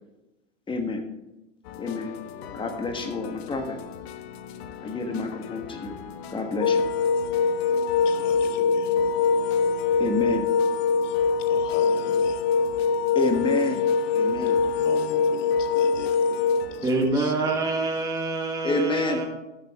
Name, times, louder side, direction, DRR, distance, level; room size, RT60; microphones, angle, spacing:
voice 1, 0.7-1.0 1.7-3.8 4.8-6.0 6.3-6.8 7.7-8.2 9.0-9.3 10.0-10.5 13.1-13.9 14.1-14.6 18.6-19.2, left 2 dB, 15° left, 5 dB, 1.5 m, -29 dB
sound 1, 1.6-17.1, left 8 dB, 55° left, 0.9 m, -41 dB
sound 2, 6.6-16.7, left 5 dB, 35° left, 0.6 m, -23 dB
voice 2, 7.3-9.7 11.0-12.8 14.6-17.8, left 6 dB, 75° left, 6 dB, 1.8 m, -43 dB
voice 3, 16.8-19.2, right 2 dB, 10° right, -1 dB, 1.5 m, -26 dB
13.5 x 7.9 x 3.7 m, 0.97 s
hypercardioid pair, 120°, 38 cm